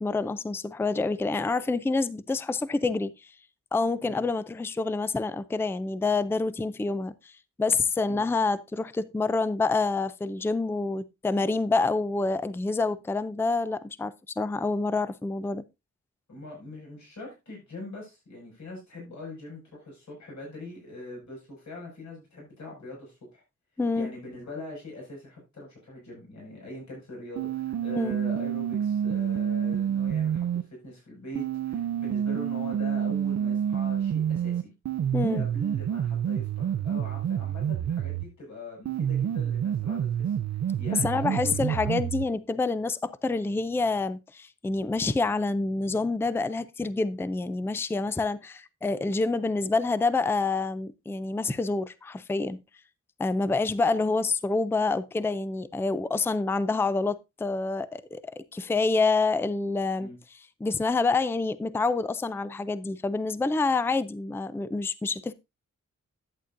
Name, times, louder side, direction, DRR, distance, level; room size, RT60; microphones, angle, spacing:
voice 1, 0.0-3.3 3.7-15.6 23.8-24.1 28.0-28.2 35.1-35.5 40.9-52.6 53.2-60.1 60.6-65.3, left 3 dB, 10° left, 0.4 m, -27 dB
voice 2, 16.3-23.4 24.0-34.7 35.2-41.9 53.4-53.6 60.0-60.2, left 1 dB, 65° left, 6.0 m, -42 dB
sound 1, 27.4-30.6 31.4-38.3 38.9-42.3, right 9 dB, 60° right, 0.6 m, -28 dB
11.0 x 8.7 x 2.6 m
wide cardioid pair, 115°, 30 cm